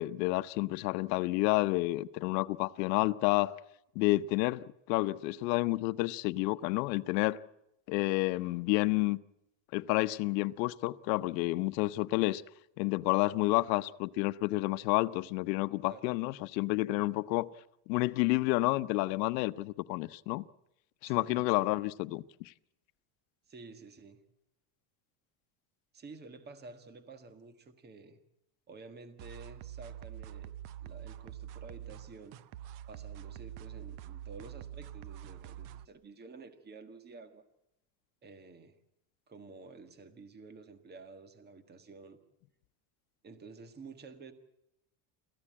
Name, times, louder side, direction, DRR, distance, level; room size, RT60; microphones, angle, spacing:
voice 1, 0.0-3.5 4.0-7.4 7.9-9.2 9.7-12.4 12.8-17.5 17.9-20.4 21.0-22.5, left 20 dB, 85° left, 0.9 m, -30 dB
voice 2, 21.0-21.9 23.5-24.2 25.9-28.2 28.7-30.5 30.8-32.4 32.9-37.4 38.2-38.8 39.3-42.2 43.2-44.3, right 4 dB, 20° right, 1.7 m, -51 dB
sound 1, 29.2-35.8, right 11 dB, 50° right, 0.8 m, -45 dB
27.5 x 15.0 x 8.7 m
cardioid pair, 160°, 49 cm